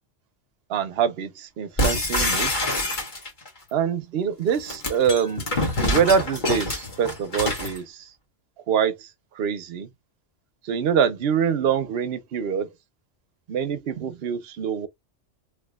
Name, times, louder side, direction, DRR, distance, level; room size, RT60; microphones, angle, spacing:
voice 1, 0.7-2.5 3.7-5.5 5.8-8.1 8.7-9.1 9.3-9.9 10.6-12.7 13.5-14.9, right 7 dB, 60° right, 0.9 m, -24 dB
sound 1, 1.8-3.5 4.5-7.8, left 1 dB, 40° left, 1.4 m, -26 dB
3.3 x 3.1 x 2.3 m
omnidirectional pair, 1.3 m